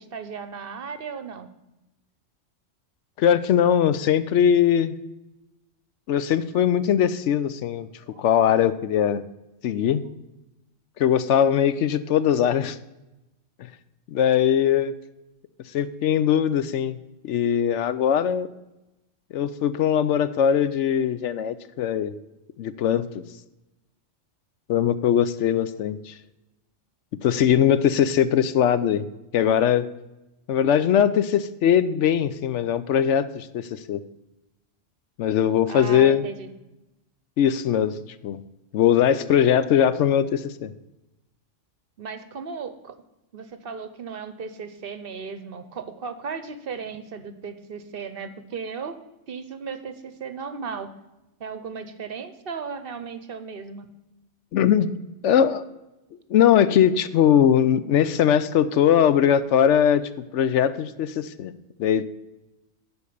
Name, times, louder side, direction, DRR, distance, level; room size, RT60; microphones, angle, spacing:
voice 1, 0.0-1.5 35.7-36.5 42.0-43.0 43.3-50.9 51.4-53.9, right 5 dB, 55° right, 10 dB, 0.8 m, -36 dB
voice 2, 3.2-4.9 6.1-7.9 8.2-9.3 9.6-10.0 11.0-12.8 14.1-14.9 15.7-17.0 17.2-18.5 19.3-22.2 22.6-23.2 24.7-26.1 27.2-29.1 29.3-29.9 30.5-34.0 35.2-36.2 37.4-37.9 38.2-38.4 38.7-40.7 54.5-54.9 55.2-55.7 56.3-60.0 60.3-61.5 61.8-62.1, left 9 dB, 75° left, 14 dB, 0.9 m, -20 dB
11.5 x 4.6 x 6.9 m, 0.97 s
omnidirectional pair, 1.3 m